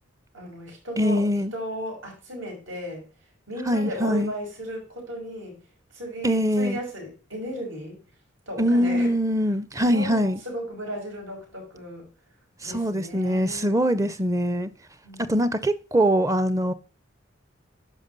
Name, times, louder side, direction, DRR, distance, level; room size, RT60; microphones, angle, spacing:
voice 1, 0.3-3.1 3.5-5.6 5.9-8.0 8.5-9.1 9.9-12.1 12.6-13.8 15.0-15.4, equal, 80° right, 5.6 m, -35 dB
voice 2, 1.0-1.5 3.7-4.3 6.2-6.8 8.6-10.4 12.6-14.7 15.2-16.7, equal, 15° right, 0.5 m, -23 dB
10.5 x 5.7 x 3.9 m
head